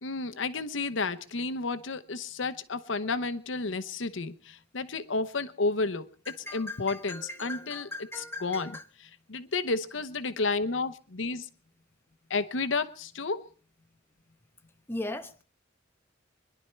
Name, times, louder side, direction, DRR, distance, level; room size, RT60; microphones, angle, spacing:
voice 1, 0.0-8.8 9.3-11.5 12.3-13.4, left 3 dB, 75° left, 10 dB, 0.9 m, -31 dB
voice 2, 6.3-8.8 14.9-15.4, left 2 dB, 10° left, 6 dB, 1.1 m, -39 dB
24.5 x 11.0 x 4.5 m, 0.38 s
head